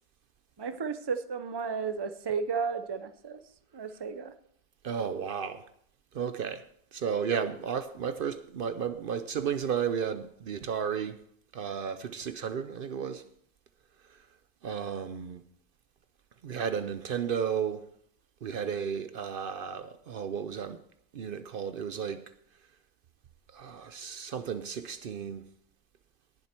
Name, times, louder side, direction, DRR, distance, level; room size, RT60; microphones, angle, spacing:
voice 1, 0.6-3.4 3.7-4.3, right 5 dB, 30° right, 0.7 m, -33 dB
voice 2, 4.8-5.6 6.1-6.6 6.9-11.2 11.5-13.2 14.6-15.4 16.4-17.9 18.4-20.8 21.1-22.2 23.5-25.4, right 7 dB, 60° right, 0.8 m, -33 dB
19.0 x 7.5 x 4.4 m
omnidirectional pair, 1.0 m